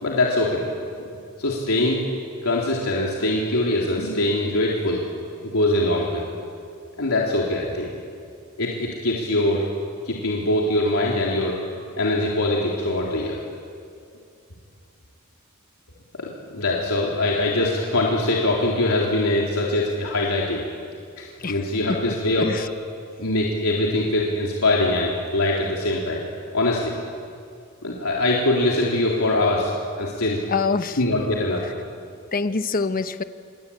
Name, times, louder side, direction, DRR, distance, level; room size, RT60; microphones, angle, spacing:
voice 1, 0.0-1.1 1.4-2.0 2.4-5.0 5.4-6.3 7.0-7.9 8.6-9.6 10.1-11.6 12.0-13.4 16.2-20.6 21.2-22.5 23.2-26.2 26.5-26.9 27.8-29.7 30.0-30.4 31.0-31.6, left 1 dB, 90° left, -3 dB, 3.5 m, -23 dB
voice 2, 22.1-22.6 30.5-31.2 32.3-33.2, left 4 dB, 40° left, 10 dB, 1.0 m, -25 dB
27.5 x 22.5 x 8.7 m, 2.3 s
head